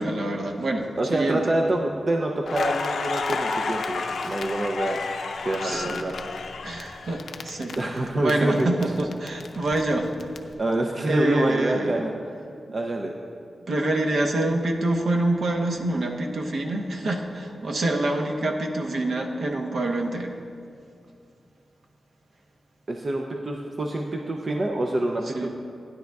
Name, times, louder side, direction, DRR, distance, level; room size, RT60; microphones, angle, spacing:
voice 1, 0.0-1.4 5.6-6.1 6.6-10.3 11.1-12.1 13.7-20.4 25.2-25.5, right 1 dB, 60° right, 2 dB, 0.9 m, -26 dB
voice 2, 1.0-5.0 5.5-6.1 7.8-8.7 10.6-12.1 12.7-13.1 22.9-25.5, right 1 dB, 35° right, 1 dB, 0.5 m, -26 dB
Crackle, 2.5-8.3 8.6-10.4, left 4 dB, 75° left, 0.5 m, -31 dB
15.0 x 10.0 x 2.3 m, 2.4 s
wide cardioid pair, 170°, 0 cm